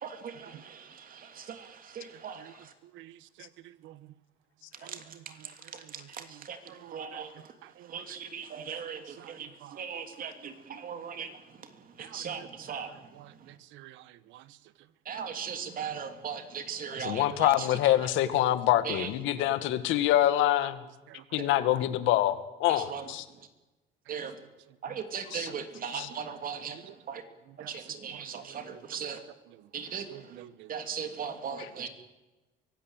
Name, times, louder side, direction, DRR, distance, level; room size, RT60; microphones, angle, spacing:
voice 1, 0.0-2.4 4.8-5.0 6.5-6.6 6.9-7.3 7.9-9.5 9.7-11.3 12.0-12.9 15.1-17.5 18.9-19.1 22.9-23.0 24.1-24.3 24.8-26.8 27.1-27.2 27.7-29.2 29.7-30.0 30.7-31.9, right 7 dB, 45° right, 3.0 m, -38 dB
voice 2, 6.8-7.2 7.8-8.0 9.2-9.3 9.6-9.8 12.0-13.3 13.7-14.0 14.3-14.4 21.1-21.2 24.9-25.0 25.9-26.1 26.7-26.9 27.6-27.7 28.1-29.1 30.1-30.7, right 14 dB, 80° right, 1.1 m, -50 dB
voice 3, 17.0-20.8 21.3-23.3 25.3-25.5 25.9-26.1 31.6-31.9, left 13 dB, 85° left, 2.0 m, -26 dB
23.5 x 16.5 x 9.1 m
cardioid pair, 120°, 20 cm